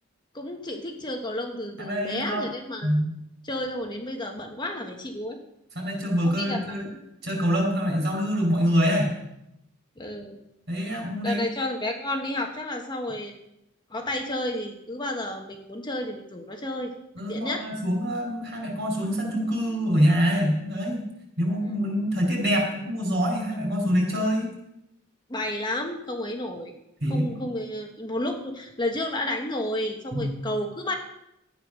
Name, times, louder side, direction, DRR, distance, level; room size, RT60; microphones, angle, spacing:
voice 1, 0.3-2.9 3.4-5.4 6.2-6.8 10.0-10.4 11.2-13.4 13.9-16.9 17.3-17.6 21.6-21.7 25.3-26.7 27.1-30.9, left 1 dB, 20° left, 3 dB, 1.3 m, -31 dB
voice 2, 1.8-2.5 2.8-3.1 5.7-6.9 7.2-9.1 10.7-11.4 17.1-21.0 21.4-24.5 27.0-27.3 30.1-30.3, equal, 55° right, 0 dB, 5.1 m, -25 dB
12.5 x 9.2 x 6.4 m, 0.83 s
head